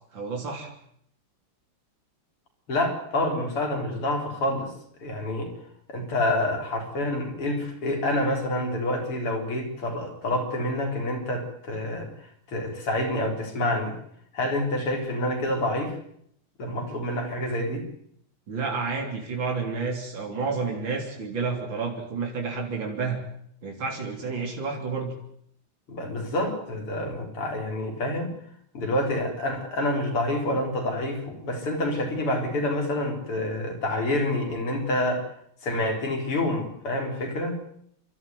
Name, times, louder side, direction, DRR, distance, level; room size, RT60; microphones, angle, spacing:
voice 1, 0.1-0.7 18.5-23.2 23.6-25.1, right 4 dB, 60° right, 1 dB, 4.2 m, -30 dB
voice 2, 2.7-4.7 5.0-5.5 5.9-12.1 12.5-13.9 14.3-16.0 16.6-17.9 25.9-28.3 28.7-35.3 35.6-37.6, left 1 dB, 85° left, 2 dB, 5.0 m, -27 dB
29.0 x 12.5 x 9.3 m, 0.69 s
omnidirectional pair, 2.4 m